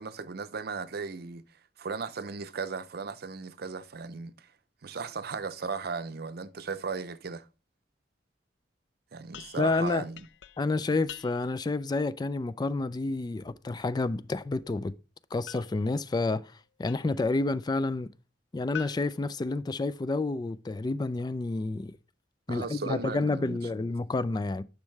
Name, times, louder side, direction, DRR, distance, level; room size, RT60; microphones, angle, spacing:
voice 1, 0.0-1.4 1.8-4.5 4.8-7.5 9.1-10.2 22.5-23.6, right 4 dB, 60° right, 0.6 m, -36 dB
sound 1, 9.3-11.7 15.5-17.3 18.7-20.2, left 9 dB, 85° left, 0.5 m, -47 dB
voice 2, 9.6-10.1 10.6-14.9 15.3-18.1 18.5-21.9 22.5-24.6, left 3 dB, 25° left, 0.3 m, -29 dB
10.5 x 6.4 x 3.2 m
head